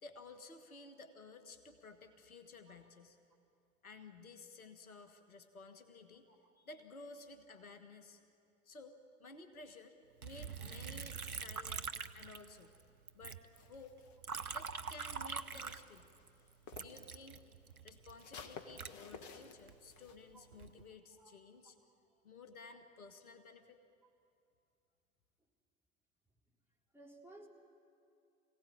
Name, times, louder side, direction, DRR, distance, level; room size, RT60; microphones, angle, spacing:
voice 1, 0.0-3.2 3.8-6.3 6.6-8.2 8.6-12.7 13.1-14.0 14.5-16.1 16.8-17.4 17.8-21.8 22.2-23.8, left 3 dB, 80° left, 9 dB, 1.4 m, -54 dB
Liquid, 10.2-12.8 13.1-16.3 16.7-19.7 20.3-20.8, right 5 dB, 90° right, 0.7 m, -44 dB
sound 1, 13.5-17.1 17.4-20.2, left 5 dB, 40° left, 1.7 m, -54 dB
voice 2, 26.9-27.5, right 2 dB, 5° right, -2 dB, 3.7 m, -57 dB
25.0 x 17.0 x 8.6 m, 2.5 s
figure-of-eight pair, 75°, 42 cm